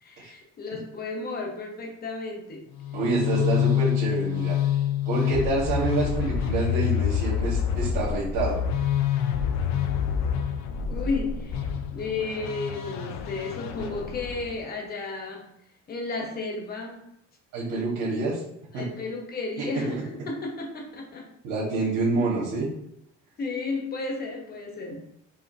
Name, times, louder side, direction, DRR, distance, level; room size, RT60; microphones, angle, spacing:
voice 1, 0.0-2.7 5.2-5.5 10.9-15.5 15.9-17.1 18.7-21.3 23.4-25.0, left 3 dB, 35° left, 0 dB, 0.9 m, -33 dB
sound 1, 2.7-14.6, left 9 dB, 70° left, 0.5 m, -27 dB
voice 2, 2.9-4.6 5.0-8.6 17.5-18.4 18.7-18.9 19.6-20.0 21.4-22.7, right 3 dB, 90° right, -6 dB, 1.4 m, -27 dB
5.0 x 2.8 x 2.6 m, 0.73 s
cardioid pair, 145°, 29 cm